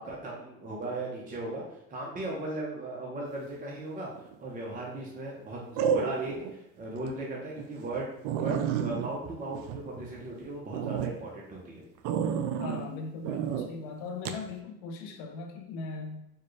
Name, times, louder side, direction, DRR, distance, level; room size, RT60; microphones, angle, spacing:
voice 1, 0.0-1.6 1.9-4.1 4.4-8.1 8.4-11.8, right 2 dB, 25° right, -4 dB, 0.9 m, -37 dB
sound 1, 4.2-4.6 5.8-6.5 7.0-7.1 7.6-7.7 7.9-8.0 8.2-10.3 10.7-11.1 12.0-12.8 13.2-13.7 14.2-14.4, right 8 dB, 65° right, 0.5 m, -30 dB
voice 2, 12.6-16.2, left 3 dB, 70° left, 3 dB, 0.8 m, -39 dB
4.4 x 2.4 x 3.2 m, 0.86 s
supercardioid pair, 105°, 34 cm